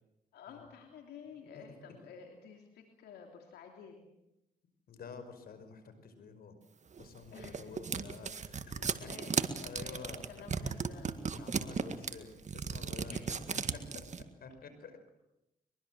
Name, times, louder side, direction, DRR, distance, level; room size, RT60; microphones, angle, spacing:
voice 1, 0.3-4.0 7.3-7.7 8.7-11.2 13.1-13.6, left 6 dB, 90° left, 3 dB, 3.3 m, -52 dB
voice 2, 1.5-2.0 4.9-6.5 7.0-9.1 9.6-10.3 11.3-13.2 13.9-15.0, left 5 dB, 70° left, 9 dB, 5.4 m, -49 dB
sound 1, 7.0-14.2, right 5 dB, 45° right, 2.0 m, -36 dB
23.5 x 22.5 x 7.7 m, 0.88 s
cardioid pair, 70°, 16 cm